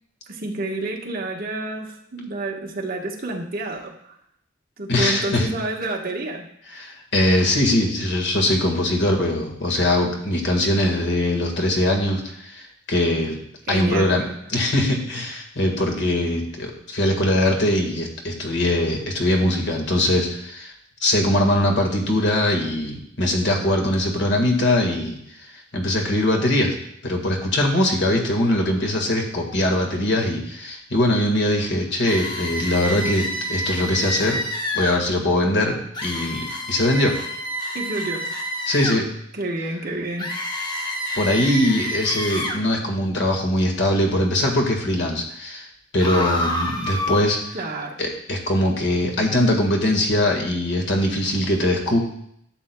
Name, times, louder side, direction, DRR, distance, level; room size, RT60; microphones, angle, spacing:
voice 1, 0.3-4.1 4.8-6.5 13.7-14.3 37.7-38.3 39.3-40.3 47.5-48.0, right 2 dB, 50° right, 0 dB, 1.2 m, -29 dB
voice 2, 4.9-5.5 6.7-13.4 13.7-20.7 21.0-26.8 27.0-34.4 34.7-35.8 36.0-37.1 38.7-39.1 41.1-45.7 45.9-47.4 48.0-52.0, left 1 dB, 65° left, 2 dB, 1.6 m, -21 dB
sound 1, 32.1-35.0 35.9-39.0 40.2-42.6 46.0-47.2, left 1 dB, 25° left, 1.0 m, -28 dB
12.0 x 7.6 x 2.2 m, 0.72 s
head